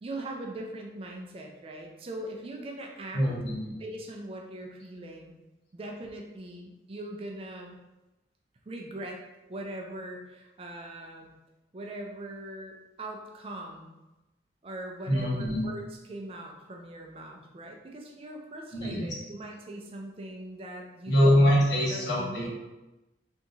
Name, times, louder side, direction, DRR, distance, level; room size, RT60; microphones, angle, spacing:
voice 1, 0.0-3.3 3.8-5.3 5.7-7.8 8.7-9.2 9.5-11.4 11.7-13.9 14.6-21.4 21.9-22.5, right 1 dB, 30° right, 1 dB, 0.4 m, -41 dB
voice 2, 3.1-3.7 15.1-15.6 18.7-19.1 21.1-22.5, equal, 75° left, -6 dB, 1.1 m, -24 dB
3.4 x 2.8 x 2.7 m, 1.0 s
head